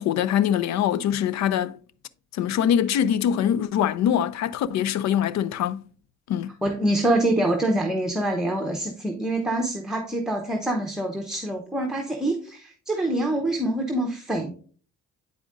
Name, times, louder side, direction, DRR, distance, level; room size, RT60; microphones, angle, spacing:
voice 1, 0.0-1.7 2.3-5.8 6.3-6.5, left 9 dB, 65° left, 0.5 m, -23 dB
voice 2, 6.6-14.5, right 1 dB, ahead, 0.8 m, -25 dB
8.3 x 5.0 x 2.5 m
cardioid pair, 90°, 30 cm